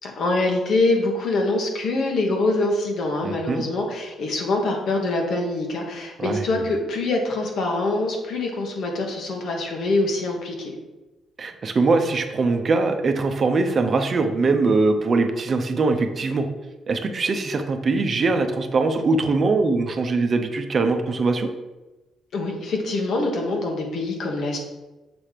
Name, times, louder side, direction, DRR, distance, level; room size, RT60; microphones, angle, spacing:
voice 1, 0.0-10.7 22.3-24.6, left 2 dB, 65° left, 1 dB, 1.5 m, -24 dB
voice 2, 3.2-3.6 6.2-6.4 11.4-16.5 16.9-21.5, right 3 dB, 45° right, 6 dB, 0.7 m, -22 dB
6.8 x 3.3 x 5.8 m, 1.1 s
cardioid pair, 90°, 0 cm